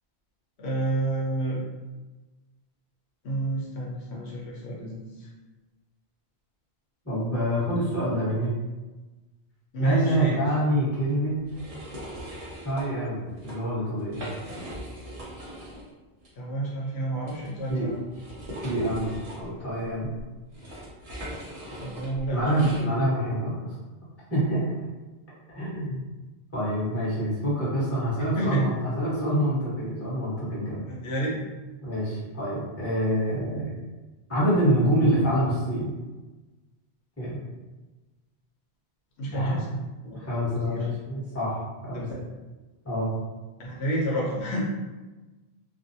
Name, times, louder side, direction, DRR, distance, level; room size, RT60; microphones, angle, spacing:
voice 1, 0.6-1.6 3.2-5.3 9.7-10.4 16.4-17.9 21.8-22.7 28.4-28.6 31.0-31.4 39.2-39.8 40.0-40.9 41.9-42.2 43.6-44.6, right 1 dB, 80° left, -3 dB, 0.9 m, -30 dB
voice 2, 7.0-8.5 9.8-11.4 12.6-14.2 17.7-17.9 18.6-20.2 22.3-23.7 24.3-24.8 25.5-26.1 26.5-30.8 31.8-33.7 34.3-36.0 37.2-37.4 39.3-39.6 40.1-42.0 42.8-43.1, equal, 15° left, -10 dB, 1.0 m, -26 dB
sound 1, 11.5-12.9 13.3-13.6 14.0-15.9 16.2-16.3 17.3-22.9, equal, 40° right, 0.6 m, -40 dB
2.5 x 2.0 x 2.6 m, 1.2 s
omnidirectional pair, 1.1 m